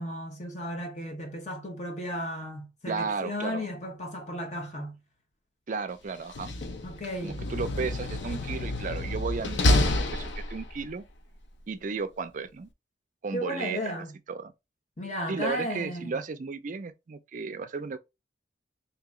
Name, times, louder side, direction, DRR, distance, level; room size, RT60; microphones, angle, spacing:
voice 1, 0.0-5.0 6.8-7.4 13.3-14.2 15.0-16.2, equal, 40° left, 1.2 m, -35 dB
voice 2, 2.9-3.7 5.7-6.5 7.2-11.0 11.7-12.7 13.2-13.8 14.3-14.5 15.3-18.0, right 4 dB, 45° right, 0.4 m, -34 dB
Slam, 6.2-10.9, left 1 dB, 85° left, 0.7 m, -28 dB
2.9 x 2.7 x 3.6 m
head